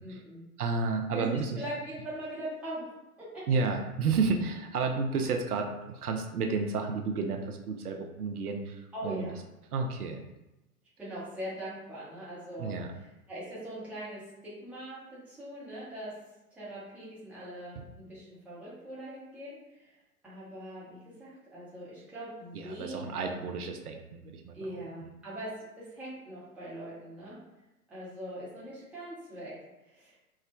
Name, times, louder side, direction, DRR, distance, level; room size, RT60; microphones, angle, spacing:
voice 1, 0.0-0.5 1.1-1.2 1.6-2.9 8.9-9.4 11.0-12.7 13.3-16.1 16.5-20.0 20.2-23.5 24.5-27.4 27.9-29.5 29.8-30.2, right 1 dB, 5° right, -9 dB, 0.7 m, -41 dB
voice 2, 0.6-1.6 3.5-9.3 9.7-10.2 12.6-12.9 22.5-25.1, right 4 dB, 70° right, 3 dB, 0.5 m, -31 dB
4.5 x 2.1 x 2.2 m, 0.96 s
figure-of-eight pair, 105°, 46 cm